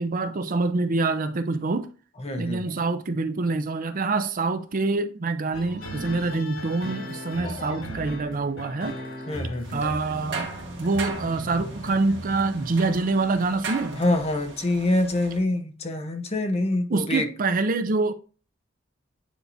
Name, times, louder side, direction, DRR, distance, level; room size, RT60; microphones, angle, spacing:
voice 1, 0.0-1.9 2.4-9.0 9.7-10.5 10.8-14.0 16.9-18.1, right 3 dB, 45° right, 0.5 m, -26 dB
voice 2, 2.2-2.7 7.4-7.7 9.3-9.8 14.0-17.3, left 2 dB, 30° left, 0.9 m, -26 dB
sound 1, 5.5-13.3, equal, 90° left, 3.1 m, -38 dB
sound 2, 9.6-15.4, right 4 dB, 60° right, 2.0 m, -38 dB
9.3 x 4.7 x 2.6 m
head